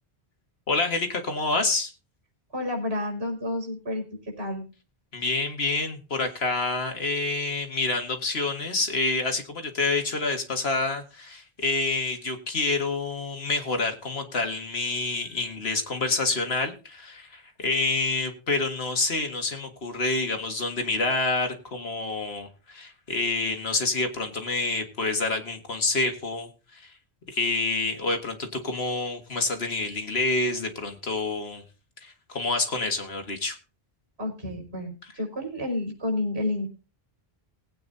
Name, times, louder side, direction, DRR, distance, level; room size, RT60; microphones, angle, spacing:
voice 1, 0.7-1.9 5.1-26.9 27.3-31.6 32.0-33.6, left 3 dB, 80° left, 5 dB, 2.0 m, -28 dB
voice 2, 2.5-4.7 34.2-36.7, left 1 dB, 80° right, 2 dB, 5.2 m, -30 dB
19.5 x 8.9 x 2.7 m, 0.33 s
omnidirectional pair, 1.0 m